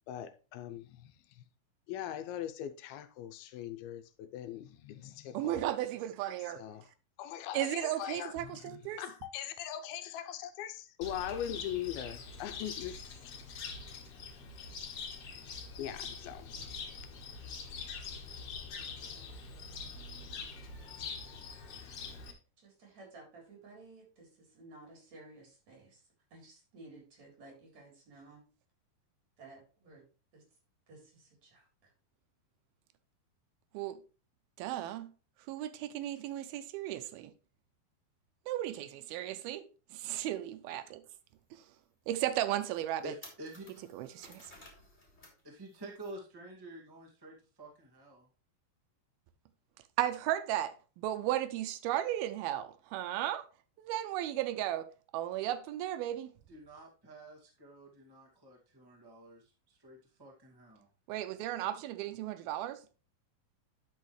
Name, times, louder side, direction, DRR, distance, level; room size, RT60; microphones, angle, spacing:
voice 1, 0.1-1.4 1.9-5.6 6.4-6.9 7.2-13.0 15.8-16.8, left 11 dB, 80° left, 2.5 m, -41 dB
voice 2, 5.3-6.6 7.5-9.0 33.7-34.0 34.6-35.1 35.5-37.3 38.5-41.0 42.1-43.1 43.9-44.4 50.0-53.5 53.8-56.3 61.1-62.8, right 13 dB, 85° right, 2.5 m, -35 dB
Cricket, 11.0-22.3, left 4 dB, 55° left, 1.9 m, -44 dB
voice 3, 22.6-26.0 26.3-28.4 29.4-30.0 30.3-30.4 30.9-31.9, right 2 dB, 45° right, 4.7 m, -55 dB
sound 1, 41.1-41.2 41.7-41.8 42.3-42.4 42.7-45.4 45.7-46.1, left 1 dB, 15° left, 2.5 m, -56 dB
voice 4, 43.0-43.7 45.4-48.3 56.5-60.9, right 1 dB, 15° right, 0.9 m, -49 dB
11.0 x 5.6 x 3.2 m
omnidirectional pair, 4.3 m